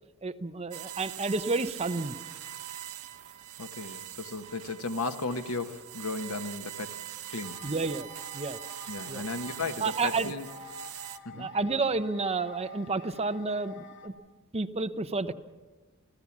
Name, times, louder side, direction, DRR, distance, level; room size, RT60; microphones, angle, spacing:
voice 1, 0.2-2.2 7.6-8.1 8.3-8.6 9.1-9.2 9.8-10.3 11.3-14.1 14.5-15.3, right 3 dB, 30° right, 10 dB, 0.8 m, -30 dB
sound 1, 0.7-11.2, right 12 dB, 80° right, 1.0 m, -42 dB
voice 2, 3.6-7.0 7.3-7.6 8.9-10.4 11.2-11.5, left 3 dB, 80° left, 8 dB, 1.4 m, -35 dB
sound 2, 7.4-14.1, left 3 dB, 60° left, 2.5 m, -49 dB
28.0 x 15.5 x 7.3 m, 1.3 s
head